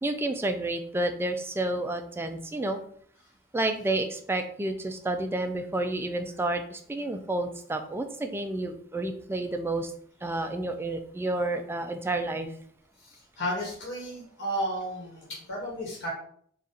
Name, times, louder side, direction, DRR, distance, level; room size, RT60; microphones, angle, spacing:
voice 1, 0.0-2.8 3.5-9.9 10.2-12.5, right 2 dB, 10° right, 6 dB, 0.3 m, -30 dB
voice 2, 13.0-16.1, equal, 55° left, -4 dB, 1.3 m, -33 dB
4.1 x 2.4 x 3.8 m, 0.62 s
head